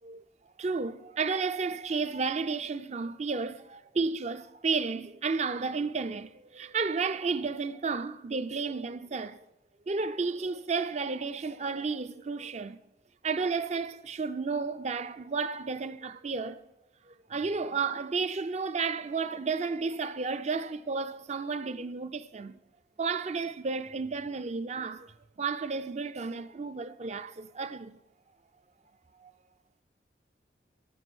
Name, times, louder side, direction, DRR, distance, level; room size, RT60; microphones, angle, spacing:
voice 1, 0.6-9.4 9.9-12.8 13.2-16.6 17.1-22.6 23.0-25.1 25.4-27.9 29.2-29.3, right 4 dB, 40° right, 0.5 m, -32 dB
12.0 x 7.8 x 6.3 m
head